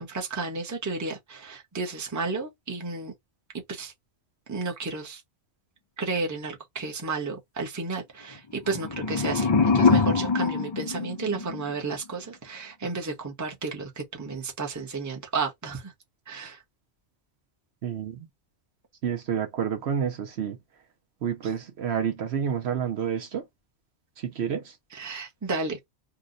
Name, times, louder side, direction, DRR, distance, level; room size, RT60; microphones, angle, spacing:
voice 1, 0.0-3.1 3.7-3.9 4.5-5.2 6.0-15.9 16.3-16.6 24.9-25.8, right 3 dB, 15° right, 0.7 m, -32 dB
sound 1, 8.6-11.7, left 4 dB, 45° left, 0.3 m, -24 dB
voice 2, 17.8-18.3 19.0-20.6 21.2-23.4 24.2-24.7, right 8 dB, 65° right, 0.9 m, -29 dB
2.8 x 2.1 x 3.7 m
omnidirectional pair, 1.2 m